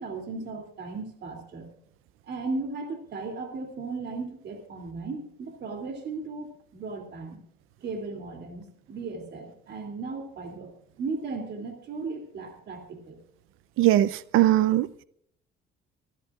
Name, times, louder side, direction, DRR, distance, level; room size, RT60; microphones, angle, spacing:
voice 1, 0.0-1.7 2.2-7.4 7.8-10.7 11.0-13.2, right 3 dB, 55° right, 2.9 m, -36 dB
voice 2, 13.8-15.0, right 14 dB, 80° right, 0.6 m, -21 dB
26.5 x 10.0 x 2.5 m
cardioid pair, 120°, 21 cm